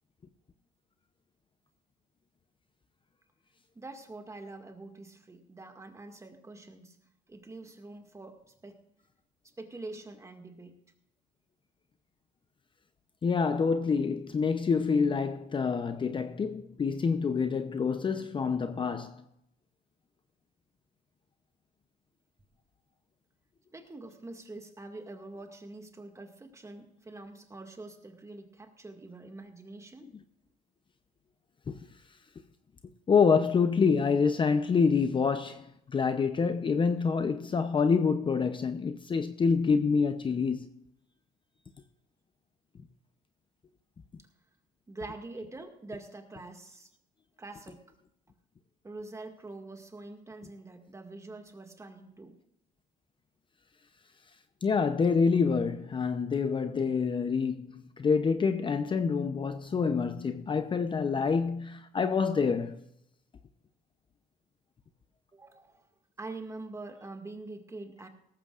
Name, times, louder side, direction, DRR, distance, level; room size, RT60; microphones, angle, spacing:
voice 1, 3.8-7.0 7.3-8.8 9.6-10.8 23.7-30.1 44.9-46.9 47.4-47.8 48.8-52.3 65.3-65.8 66.2-68.1, right 2 dB, 15° right, 2.0 m, -45 dB
voice 2, 13.2-19.2 31.7-31.8 33.1-40.7 54.6-62.8, left 5 dB, 30° left, 0.7 m, -27 dB
17.5 x 14.5 x 2.5 m
cardioid pair, 110°, 17 cm